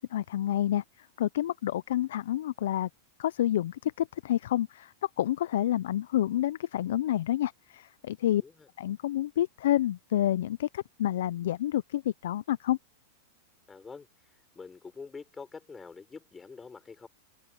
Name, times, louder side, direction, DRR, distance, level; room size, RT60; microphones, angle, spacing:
voice 1, 0.0-2.9 3.2-8.4 8.8-12.8, left 12 dB, 75° left, 0.4 m, -29 dB
voice 2, 8.3-8.7 13.7-17.1, left 5 dB, 15° left, 4.5 m, -46 dB
open air
hypercardioid pair, 130°, 0 cm